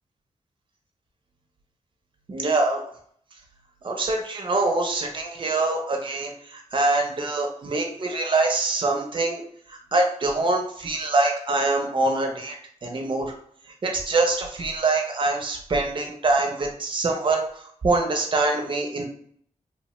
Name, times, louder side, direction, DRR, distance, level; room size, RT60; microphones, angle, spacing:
voice 1, 2.3-2.8 3.8-9.4 9.7-12.6 12.8-13.3 13.8-19.0, right 2 dB, 40° right, 2 dB, 0.5 m, -24 dB
2.9 x 2.1 x 2.9 m, 0.62 s
wide cardioid pair, 160°, 13 cm